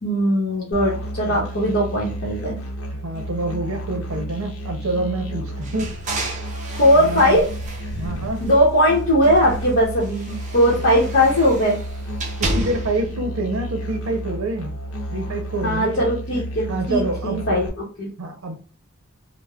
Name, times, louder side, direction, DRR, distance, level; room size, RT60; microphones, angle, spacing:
voice 1, 0.0-2.6 6.8-7.5 8.4-11.8 15.6-18.1, equal, 50° left, -4 dB, 0.8 m, -19 dB
Musical instrument, 0.7-17.7, right 1 dB, 85° left, 0.7 m, -32 dB
voice 2, 1.2-1.6 3.0-5.9 6.9-7.4 8.0-8.4 12.4-14.7 15.1-16.0 16.7-17.4 18.2-18.6, right 2 dB, 85° right, 3 dB, 0.6 m, -27 dB
sound 1, 5.6-8.8 9.2-13.1, right 2 dB, 35° right, 0.5 m, -32 dB
3.4 x 2.0 x 2.2 m, 0.40 s
head